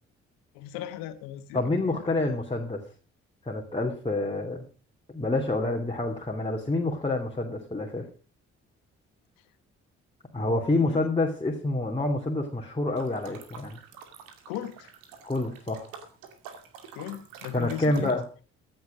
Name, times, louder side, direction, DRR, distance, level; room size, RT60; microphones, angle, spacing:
voice 1, 0.5-2.4 10.4-11.0 14.5-14.9 16.9-18.2, left 12 dB, 70° left, 12 dB, 1.5 m, -38 dB
voice 2, 1.5-2.8 3.5-4.7 5.1-8.0 10.3-13.8 15.2-15.9 17.5-18.2, left 2 dB, 15° left, 0 dB, 2.9 m, -28 dB
sound 1, 13.0-18.3, right 7 dB, 65° right, 2.4 m, -47 dB
15.5 x 10.5 x 5.0 m, 0.36 s
figure-of-eight pair, 40°, 36 cm